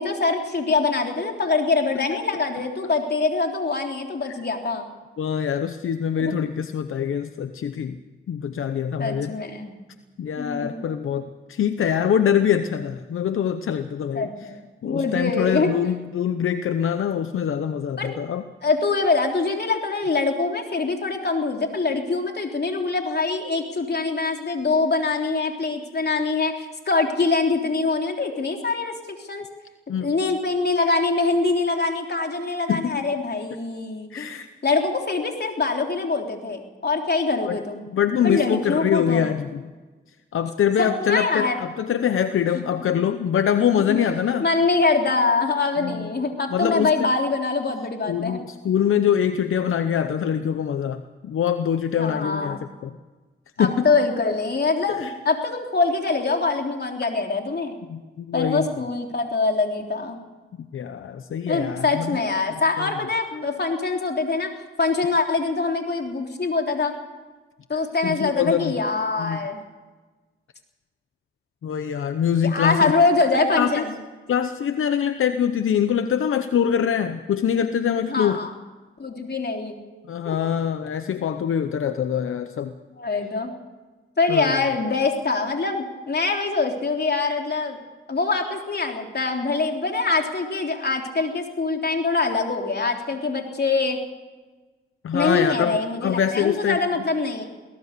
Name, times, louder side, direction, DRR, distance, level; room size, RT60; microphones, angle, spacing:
voice 1, 0.0-4.9 6.2-6.3 9.0-9.7 10.4-10.8 14.1-14.6 14.8-15.7 18.0-18.1 18.6-29.4 30.0-34.3 34.6-37.8 38.2-39.3 40.8-41.6 42.9-43.0 43.9-44.0 44.4-48.4 52.0-52.6 53.6-57.8 58.3-60.2 61.5-64.5 64.8-66.9 67.7-69.6 72.4-73.9 78.1-78.5 79.0-79.8 80.3-80.4 83.0-83.5 84.2-87.8 88.1-94.0 95.1-97.4, left 3 dB, 55° left, 3 dB, 3.7 m, -24 dB
voice 2, 5.2-8.0 8.3-9.3 10.2-14.3 14.8-18.4 29.9-30.1 32.7-33.0 34.1-34.5 37.4-37.6 37.9-39.6 40.3-44.4 45.8-46.1 46.5-47.1 48.1-52.9 53.6-53.9 55.0-55.1 57.9-58.7 60.7-62.1 62.8-62.9 68.0-68.8 69.2-69.4 71.6-72.9 73.5-73.8 74.3-78.4 80.1-82.7 84.3-84.6 95.0-96.8, left 8 dB, 90° left, 9 dB, 0.8 m, -24 dB
23.5 x 18.0 x 6.8 m, 1.3 s
cardioid pair, 55°, 21 cm